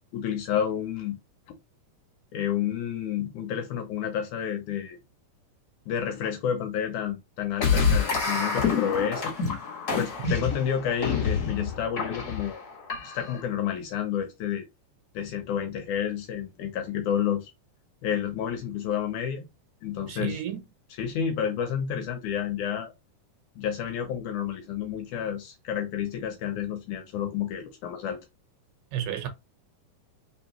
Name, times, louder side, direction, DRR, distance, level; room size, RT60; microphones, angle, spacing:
voice 1, 0.1-1.2 2.3-5.0 5.9-9.3 10.0-12.6 13.0-14.7 15.1-17.5 18.0-19.4 19.8-20.4 21.0-22.9 23.6-28.2, left 8 dB, 75° left, 2.0 m, -30 dB
sound 1, 7.6-13.4, left 5 dB, 40° left, 1.4 m, -27 dB
voice 2, 20.1-20.6 28.9-29.3, right 10 dB, 80° right, 2.5 m, -32 dB
4.5 x 4.1 x 2.9 m
omnidirectional pair, 4.1 m